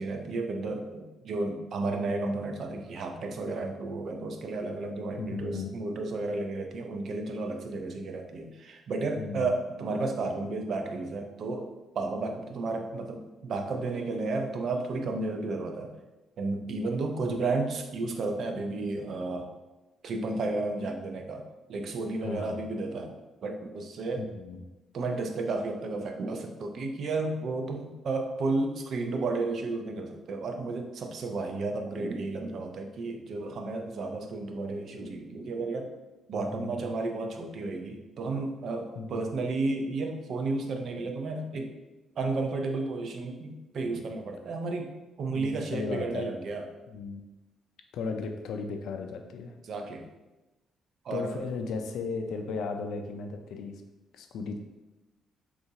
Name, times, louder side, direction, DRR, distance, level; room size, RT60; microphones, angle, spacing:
voice 1, 0.0-15.9 16.4-19.5 20.0-21.4 21.7-24.2 24.9-35.9 36.3-41.7 42.2-46.7 49.6-50.1 51.0-51.4, right 3 dB, 60° right, 5 dB, 0.4 m, -32 dB
voice 2, 5.2-5.7 9.2-9.5 17.2-17.4 22.2-22.6 24.2-24.6 36.3-36.9 39.0-39.4 45.3-46.3 46.9-47.2 47.9-49.6 51.1-53.8 54.1-54.6, left 4 dB, 80° left, 5 dB, 0.4 m, -36 dB
3.8 x 2.4 x 2.7 m, 1.1 s
cardioid pair, 90°, 0 cm